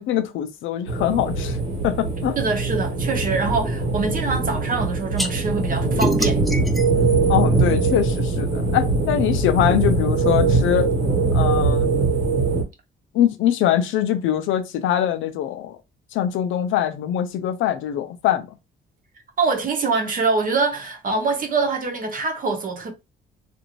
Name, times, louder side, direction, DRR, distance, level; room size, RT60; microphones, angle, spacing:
voice 1, 0.0-1.6 1.8-2.4 7.3-10.9 11.3-11.9 13.1-15.8 16.1-18.5, left 11 dB, 85° left, 0.5 m, -23 dB
sound 1, 0.9-12.6, right 3 dB, 75° right, 1.4 m, -22 dB
voice 2, 2.4-6.4 19.4-22.9, right 4 dB, 45° right, 0.9 m, -24 dB
sound 2, 5.2-5.3 6.0-8.2, right 1 dB, ahead, 0.4 m, -27 dB
2.6 x 2.5 x 3.0 m
cardioid pair, 90°, 20 cm